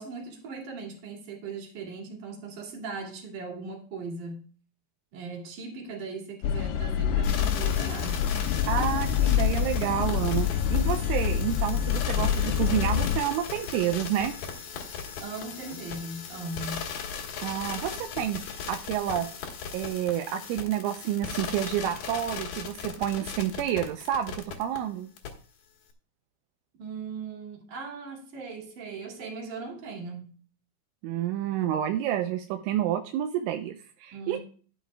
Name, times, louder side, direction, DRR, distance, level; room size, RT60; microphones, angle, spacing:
voice 1, 0.0-4.5 5.1-8.2 15.2-16.8 26.8-30.4 34.1-34.4, right 4 dB, 45° right, 0 dB, 3.4 m, -39 dB
sound 1, 6.4-13.2, left 9 dB, 85° left, 2.5 m, -26 dB
sound 2, 7.2-24.8 25.2-25.3, left 6 dB, 60° left, 2.8 m, -37 dB
voice 2, 8.7-14.3 17.4-19.3 19.7-25.1 31.0-34.4, right 11 dB, 85° right, 6 dB, 3.0 m, -29 dB
12.0 x 11.0 x 2.3 m, 0.41 s
omnidirectional pair, 5.7 m